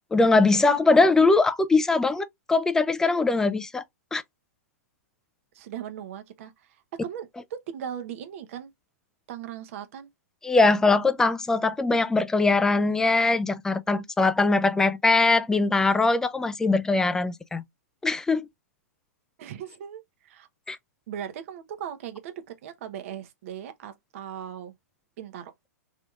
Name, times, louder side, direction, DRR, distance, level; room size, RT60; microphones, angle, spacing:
voice 1, 0.1-3.8 4.1-4.2 10.4-17.6 18.0-18.5 20.7-20.8, left 3 dB, 5° left, 0.4 m, -21 dB
voice 2, 5.5-8.7 9.3-10.1 19.4-20.5 21.1-24.7 25.2-25.5, right 9 dB, 55° right, 0.8 m, -38 dB
3.4 x 3.0 x 2.3 m
hypercardioid pair, 120°, 9 cm